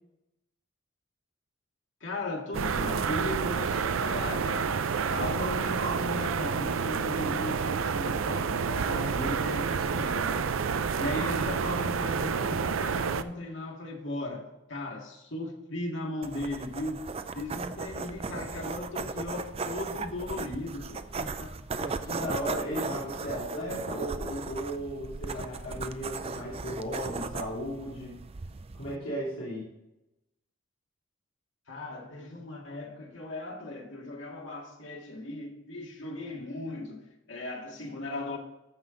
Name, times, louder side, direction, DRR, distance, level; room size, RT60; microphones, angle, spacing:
voice 1, 2.0-4.8 5.1-10.6 11.0-17.0 17.3-21.5 31.7-38.4, left 2 dB, 65° left, 2.0 m, -37 dB
sound 1, 2.5-13.2, right 6 dB, 80° right, 0.5 m, -29 dB
sound 2, 16.2-29.0, right 4 dB, 30° right, 0.4 m, -37 dB
voice 2, 21.7-28.2 28.8-29.7, equal, 80° left, 2.8 m, -35 dB
14.0 x 5.5 x 3.8 m
head